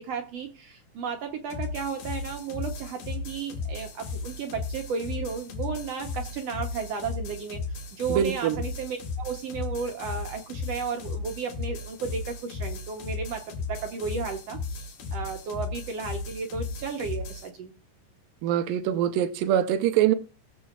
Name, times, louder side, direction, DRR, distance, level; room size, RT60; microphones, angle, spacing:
voice 1, 0.0-17.7, right 5 dB, 70° right, 1.6 m, -34 dB
sound 1, 1.5-17.5, left 4 dB, 85° left, 3.5 m, -35 dB
voice 2, 8.1-8.6 18.4-20.1, right 11 dB, 90° right, 2.5 m, -24 dB
20.5 x 7.4 x 2.3 m
omnidirectional pair, 3.9 m